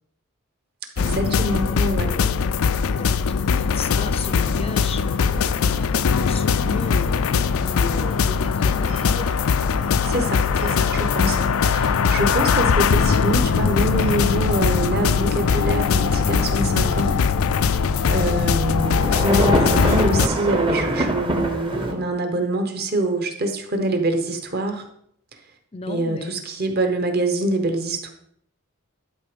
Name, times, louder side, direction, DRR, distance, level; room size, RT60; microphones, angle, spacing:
sound 1, 1.0-20.3, left 6 dB, 75° left, 0.4 m, -21 dB
voice 1, 1.0-2.1 10.0-17.1 18.0-24.8 25.9-28.1, right 2 dB, 45° right, 5 dB, 1.2 m, -25 dB
voice 2, 1.7-5.6 6.2-9.3 25.7-26.4, left 3 dB, 25° left, 11 dB, 0.5 m, -35 dB
sound 2, 2.9-18.9, left 1 dB, 80° right, 2.1 m, -45 dB
sound 3, 3.9-21.9, right 1 dB, 25° right, 0.8 m, -30 dB
11.5 x 4.0 x 5.2 m, 0.69 s
head